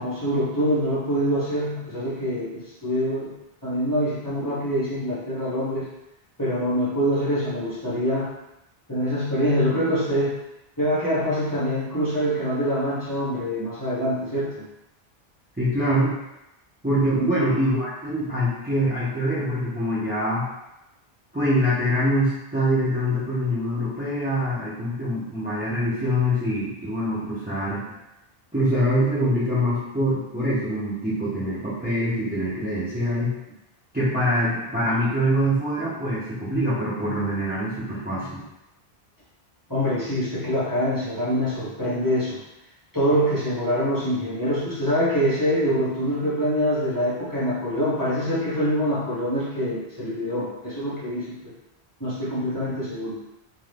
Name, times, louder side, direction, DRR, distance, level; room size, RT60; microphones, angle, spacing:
voice 1, 0.0-3.3 3.6-5.9 6.4-8.3 8.9-10.4 10.8-14.7 17.2-17.3 39.7-42.4 42.9-51.5 52.0-53.2, equal, 20° left, -10 dB, 0.9 m, -25 dB
voice 2, 15.6-16.1 16.8-20.5 21.3-27.9 28.5-33.3 33.9-38.4, equal, 10° right, -11 dB, 0.7 m, -24 dB
2.7 x 2.2 x 3.3 m, 0.91 s
omnidirectional pair, 1.1 m